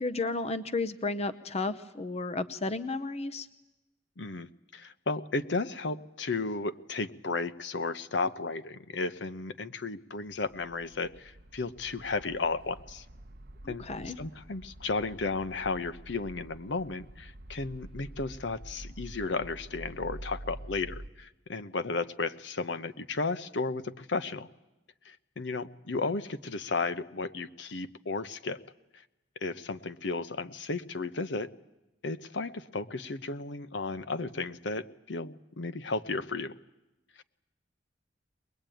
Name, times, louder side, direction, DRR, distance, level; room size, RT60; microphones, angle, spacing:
voice 1, 0.0-3.5 13.6-14.2, left 3 dB, 35° left, 13 dB, 0.8 m, -33 dB
voice 2, 4.2-13.0 13.7-24.5 25.0-28.6 29.4-31.5 32.0-36.5, left 3 dB, 70° left, 13 dB, 0.9 m, -34 dB
sound 1, 10.3-21.1, right 1 dB, 55° right, 1.0 m, -47 dB
22.0 x 22.0 x 9.1 m, 0.98 s
head